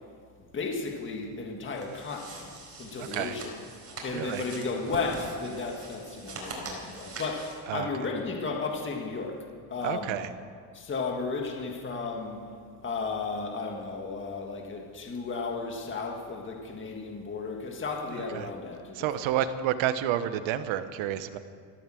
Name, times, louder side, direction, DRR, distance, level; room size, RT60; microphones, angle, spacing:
voice 1, 0.5-2.5 2.8-3.5 4.0-9.4 9.7-10.2 10.7-12.5 12.8-19.1, left 4 dB, 25° left, 1 dB, 1.8 m, -34 dB
sound 1, 1.7-7.6, right 2 dB, 30° right, 4.4 m, -42 dB
voice 2, 3.0-3.4 4.1-4.4 7.7-7.9 9.8-10.3 18.2-18.5 18.9-21.4, right 11 dB, 70° right, 11 dB, 1.1 m, -30 dB
14.5 x 12.0 x 7.7 m, 2.1 s
cardioid pair, 135°, 47 cm